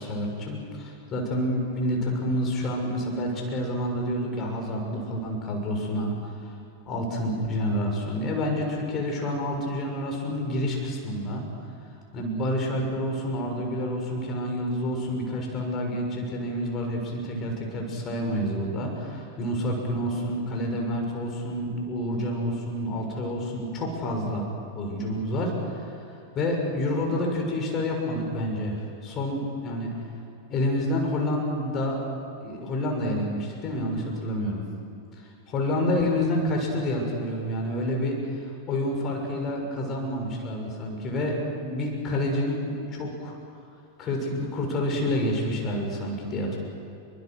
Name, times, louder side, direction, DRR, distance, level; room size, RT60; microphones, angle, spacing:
voice 1, 0.0-6.5 6.8-11.4 12.1-24.4 24.7-29.9 30.5-32.0 32.4-34.6 35.5-43.3 44.0-46.6, left 1 dB, 30° left, 1 dB, 6.5 m, -28 dB
29.0 x 24.0 x 6.5 m, 2.5 s
figure-of-eight pair, 90°, 0 cm